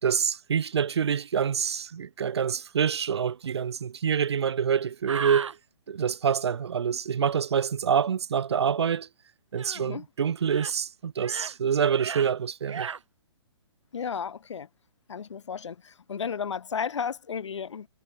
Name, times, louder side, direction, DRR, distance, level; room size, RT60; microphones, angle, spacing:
voice 1, 0.0-5.5 5.9-9.1 9.5-12.9, right 7 dB, 65° right, 2.9 m, -26 dB
sound 1, 5.1-5.5 9.6-9.8 10.4-10.7 11.2-11.6 11.9-12.3 12.7-13.0, right 6 dB, 85° right, 3.2 m, -35 dB
voice 2, 13.9-14.7 15.1-17.9, left 7 dB, 80° left, 2.1 m, -33 dB
hypercardioid pair, 175°, 15 cm